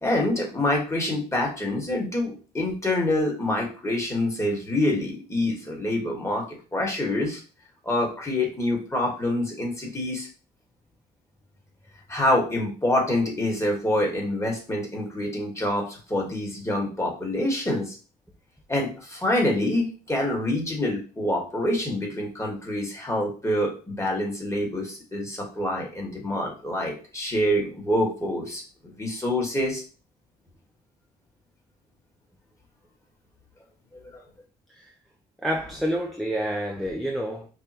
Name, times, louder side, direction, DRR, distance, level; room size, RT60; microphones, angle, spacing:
voice 1, 0.0-6.4 6.7-7.4 7.8-10.3 12.1-18.0 18.7-29.8 34.1-34.2, left 1 dB, 15° left, -1 dB, 1.6 m, -26 dB
voice 2, 35.4-37.5, equal, ahead, 0 dB, 0.6 m, -28 dB
5.4 x 2.2 x 2.9 m, 0.36 s
cardioid pair, 85°, 18 cm